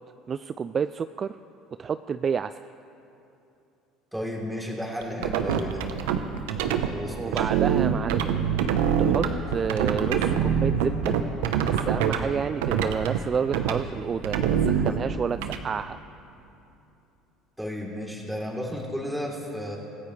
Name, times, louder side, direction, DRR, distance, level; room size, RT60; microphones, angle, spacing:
voice 1, 0.3-1.4 1.8-2.6 7.1-8.3 9.0-11.2 11.6-16.0, right 6 dB, 35° right, 12 dB, 0.3 m, -29 dB
voice 2, 4.1-5.8 6.8-7.5 17.6-19.8, equal, 5° right, -2 dB, 3.5 m, -33 dB
sound 1, 5.0-6.9 7.3-12.2 12.6-13.2 13.5-13.8 14.2-15.6, right 8 dB, 85° right, 0.9 m, -24 dB
25.0 x 15.0 x 3.3 m, 2.8 s
supercardioid pair, 90°, 0 cm